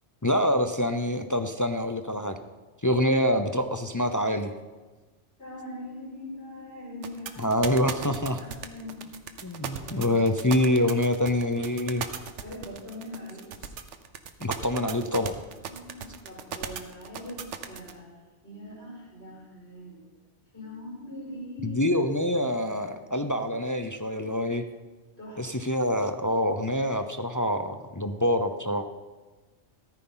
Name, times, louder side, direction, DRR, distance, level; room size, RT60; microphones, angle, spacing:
voice 1, 0.2-2.4 2.8-4.5 7.4-8.4 9.4-12.1 14.4-15.4 21.6-24.7 25.4-28.8, left 1 dB, 25° left, 7 dB, 0.5 m, -26 dB
voice 2, 5.4-7.6 8.3-9.1 9.8-10.3 12.4-13.5 15.7-18.1 18.4-20.0 20.5-21.9 25.2-25.4, left 1 dB, 65° left, -5 dB, 5.3 m, -41 dB
sound 1, 7.0-17.9, right 7 dB, 90° right, 1.2 m, -36 dB
14.5 x 13.5 x 4.0 m, 1.3 s
omnidirectional pair, 1.2 m